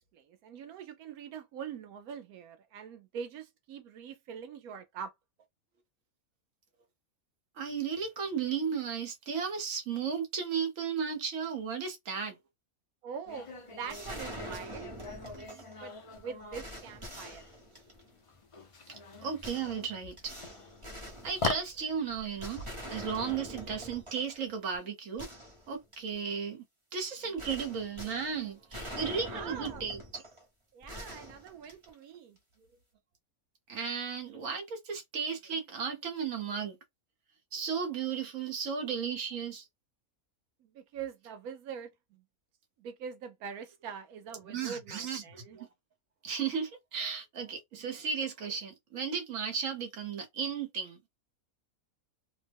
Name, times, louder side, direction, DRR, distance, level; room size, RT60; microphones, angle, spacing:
voice 1, 0.1-5.1 13.0-14.9 15.3-17.6 29.3-29.9 30.7-32.4 40.6-42.2 42.8-45.6, right 7 dB, 80° right, 1.1 m, -44 dB
voice 2, 7.6-12.4 18.9-20.3 21.2-22.6 22.9-25.3 25.7-26.6 26.9-30.2 33.7-36.8 37.5-39.6 44.4-45.7 46.2-51.0, right 6 dB, 65° right, 1.4 m, -35 dB
sound 1, 13.3-24.5, left 3 dB, 55° left, 0.3 m, -43 dB
sound 2, 13.9-15.8 16.2-16.3 16.5-18.2 19.4-21.8 22.4-24.4 24.7-24.8 25.2-26.2 27.4-30.4 30.8-32.1, equal, 25° right, 0.8 m, -45 dB
3.0 x 2.1 x 3.4 m
omnidirectional pair, 1.5 m